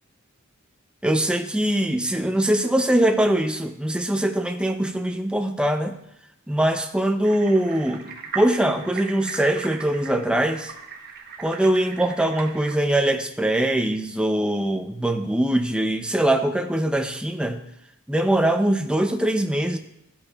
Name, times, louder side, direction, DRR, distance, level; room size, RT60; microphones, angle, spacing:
voice 1, 1.0-6.0 6.5-10.7 11.4-17.6 18.1-19.8, right 1 dB, 5° right, 6 dB, 0.6 m, -22 dB
sound 1, 7.2-12.7, right 5 dB, 50° right, 1.0 m, -38 dB
12.0 x 8.7 x 2.4 m, 0.79 s
head